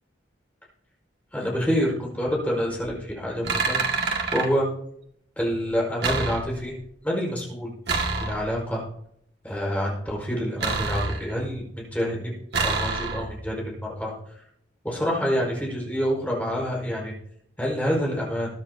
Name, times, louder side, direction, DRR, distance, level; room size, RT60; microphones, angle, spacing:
voice 1, 1.3-3.8 4.3-4.7 5.4-6.8 7.0-7.7 8.2-8.8 9.4-12.3 12.6-14.1 14.8-17.1 17.6-18.5, equal, 10° left, -3 dB, 5.3 m, -27 dB
sound 1, 2.8-3.0 3.4-4.5 6.0-6.8 7.9-8.7 10.6-11.6 12.5-13.5, right 4 dB, 60° right, 2.2 m, -27 dB
21.5 x 9.9 x 2.9 m, 0.71 s
head